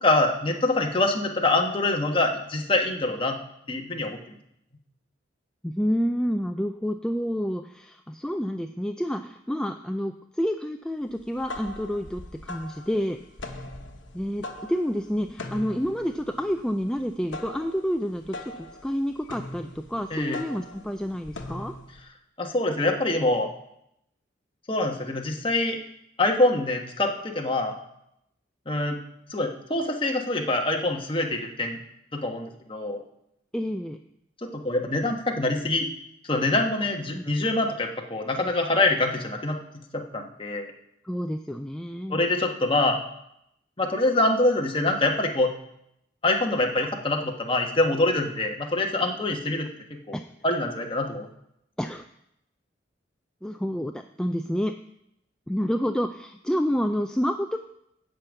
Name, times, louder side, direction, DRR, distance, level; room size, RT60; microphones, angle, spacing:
voice 1, 0.0-3.4 3.7-4.4 20.1-20.4 22.4-23.5 24.7-25.8 26.2-27.7 28.7-29.0 29.3-31.8 32.1-33.0 34.5-35.9 36.2-39.6 39.9-40.7 42.1-43.0 43.8-45.5 46.2-49.7 50.1-50.2 50.4-51.3, left 2 dB, 30° left, 2 dB, 1.4 m, -25 dB
voice 2, 5.6-13.6 14.1-21.7 33.5-34.0 37.1-37.3 41.0-42.2 50.1-50.2 51.8-52.0 53.4-54.7 55.5-57.6, equal, 5° left, 5 dB, 0.3 m, -29 dB
sound 1, 11.2-22.0, left 1 dB, 75° left, 1.3 m, -41 dB
11.5 x 5.2 x 8.3 m, 0.78 s
head